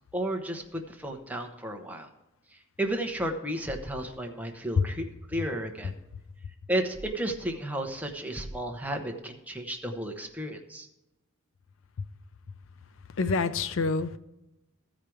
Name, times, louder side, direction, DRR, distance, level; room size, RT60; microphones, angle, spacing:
voice 1, 0.1-2.1 2.8-5.9 6.7-10.9, right 1 dB, 5° right, 3 dB, 0.9 m, -33 dB
voice 2, 13.2-14.2, left 4 dB, 65° left, 13 dB, 0.5 m, -26 dB
14.5 x 5.0 x 4.6 m, 0.92 s
head